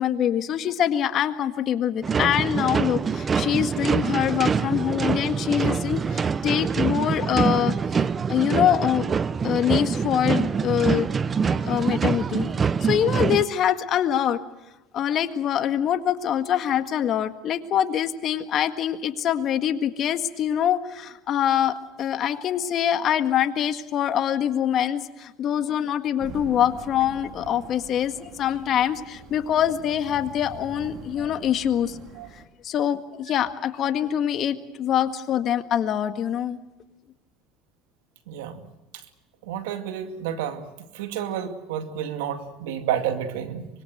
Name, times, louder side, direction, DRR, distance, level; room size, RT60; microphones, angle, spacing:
voice 1, 0.0-8.0 8.3-9.1 9.4-11.1 11.6-12.5 12.8-14.4 14.9-32.0 32.6-36.6, left 10 dB, 50° left, 8 dB, 1.8 m, -24 dB
sound 1, 2.0-13.4, right 6 dB, 30° right, 0.8 m, -25 dB
sound 2, 26.2-32.5, right 6 dB, 50° right, 2.8 m, -43 dB
voice 2, 38.3-38.6 39.4-40.7 40.9-43.7, right 9 dB, 80° right, 7 dB, 2.2 m, -30 dB
25.0 x 22.0 x 8.0 m, 0.99 s
supercardioid pair, 100°, 0 cm